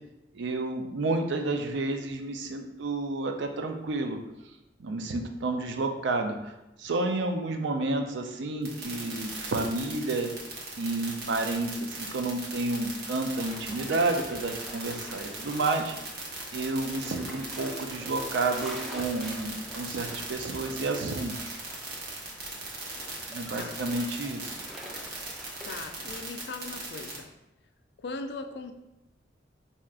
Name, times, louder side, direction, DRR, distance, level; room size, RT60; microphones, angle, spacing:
voice 1, 0.3-4.2 4.8-10.3 10.8-16.0 16.5-21.6 23.3-24.5, right 2 dB, 80° right, 5 dB, 0.5 m, -30 dB
sound 1, 8.6-27.2, right 3 dB, 60° right, 0.9 m, -39 dB
sound 2, 13.4-26.2, equal, ahead, 0.4 m, -46 dB
voice 2, 23.5-23.8 25.6-27.3 28.0-28.7, left 3 dB, 65° left, 6 dB, 0.4 m, -39 dB
4.6 x 2.8 x 2.4 m, 0.93 s
head